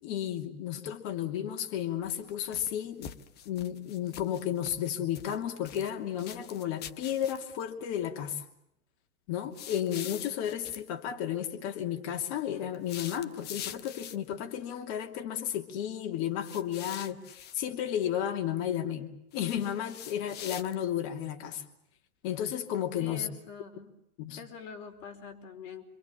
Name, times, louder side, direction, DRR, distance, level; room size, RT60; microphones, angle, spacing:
voice 1, 0.0-3.1 3.4-8.4 9.3-21.6 22.2-23.3 24.2-24.4, left 10 dB, 40° left, 5 dB, 2.8 m, -33 dB
sound 1, 2.0-2.7 3.0-4.9 5.1-5.9 6.2-7.6 9.5-10.8 12.7-14.3 16.4-17.6 19.3-21.0, left 9 dB, 20° left, 1.0 m, -44 dB
voice 2, 23.0-24.0 24.4-25.8, left 6 dB, 55° left, 5 dB, 4.8 m, -45 dB
27.5 x 26.5 x 7.4 m, 0.78 s
hypercardioid pair, 145°, 45 cm